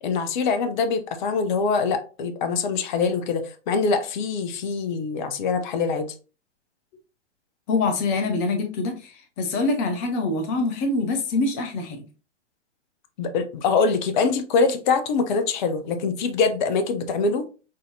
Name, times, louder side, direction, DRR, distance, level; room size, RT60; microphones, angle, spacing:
voice 1, 0.0-6.1 13.2-17.5, left 4 dB, 40° left, 9 dB, 0.7 m, -24 dB
voice 2, 7.7-8.9 9.4-12.0, left 3 dB, 15° left, 6 dB, 0.3 m, -24 dB
6.3 x 2.7 x 2.6 m, 0.33 s
figure-of-eight pair, 110°, 36 cm